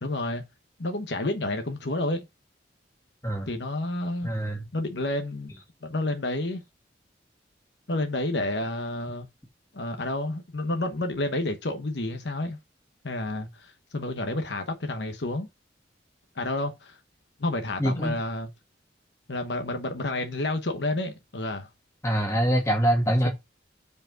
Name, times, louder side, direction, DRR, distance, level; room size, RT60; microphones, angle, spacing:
voice 1, 0.0-0.4 0.8-2.2 3.5-4.3 4.7-5.5 5.8-6.6 7.9-9.3 9.7-12.6 13.0-15.5 16.3-17.0 17.4-18.5 19.3-21.7, left 2 dB, 70° left, 1.0 m, -30 dB
voice 2, 4.2-4.6 17.8-18.2 22.0-23.3, equal, 15° left, 2.3 m, -24 dB
5.2 x 4.8 x 6.1 m
head